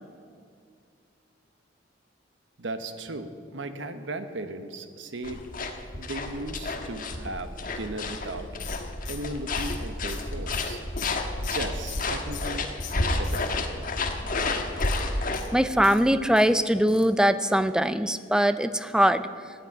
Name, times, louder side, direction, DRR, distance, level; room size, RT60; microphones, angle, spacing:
voice 1, 2.6-5.4 6.0-8.5 9.1-10.8 11.5-12.7 12.9-13.5, right 2 dB, 70° right, 9 dB, 1.1 m, -36 dB
sound 1, 5.2-15.4, left 2 dB, 45° left, 1.3 m, -30 dB
sound 2, 8.6-12.6 12.8-13.8 14.7-16.5 16.9-17.2 17.5-17.6 17.8-17.9, left 10 dB, 85° left, 2.2 m, -43 dB
voice 2, 15.5-19.2, equal, 5° right, 12 dB, 0.5 m, -22 dB
15.5 x 9.1 x 9.0 m, 2.3 s
head